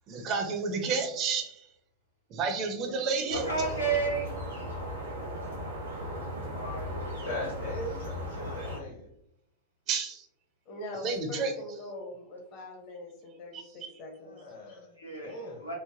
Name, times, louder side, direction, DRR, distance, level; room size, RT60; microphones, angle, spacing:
voice 1, 0.1-1.7 2.3-3.4 9.9-10.3 11.0-11.5 13.5-13.6, right 4 dB, 35° right, 5 dB, 0.4 m, -30 dB
voice 2, 2.8-3.8 10.7-14.8, left 1 dB, 45° left, 1 dB, 0.6 m, -43 dB
sound 1, 3.3-8.8, equal, 75° right, 0.9 m, -37 dB
voice 3, 3.4-4.3 6.5-7.4 15.0-15.7, right 4 dB, 85° left, -2 dB, 0.7 m, -33 dB
voice 4, 7.2-9.1 14.2-15.7, left 1 dB, 70° left, -3 dB, 1.1 m, -39 dB
3.1 x 2.1 x 2.4 m, 0.76 s
figure-of-eight pair, 90°, 0 cm